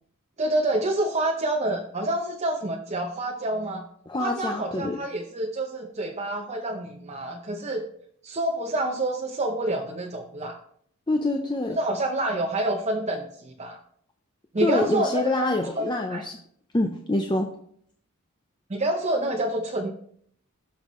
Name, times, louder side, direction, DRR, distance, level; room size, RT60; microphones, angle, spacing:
voice 1, 0.4-3.8 4.2-7.8 8.2-10.6 11.8-13.8 14.5-15.5 15.7-16.2 18.7-19.9, right 1 dB, 30° right, 1 dB, 0.7 m, -27 dB
voice 2, 4.1-5.0 11.1-11.8 14.6-16.4 16.7-17.5, left 2 dB, 20° left, 3 dB, 0.6 m, -26 dB
16.0 x 5.7 x 3.1 m, 0.64 s
head